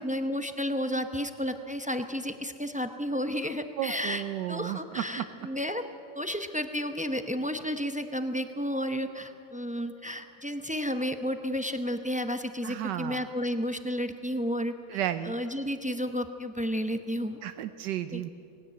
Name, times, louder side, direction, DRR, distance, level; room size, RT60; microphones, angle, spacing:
voice 1, 0.0-4.2 4.5-5.8 6.1-15.0 15.2-17.4 18.1-18.2, equal, 10° right, 7 dB, 0.5 m, -32 dB
voice 2, 3.8-5.3 12.6-13.2 14.9-15.3 17.4-18.3, right 12 dB, 85° right, 10 dB, 1.4 m, -33 dB
20.0 x 17.0 x 9.0 m, 2.5 s
omnidirectional pair, 1.8 m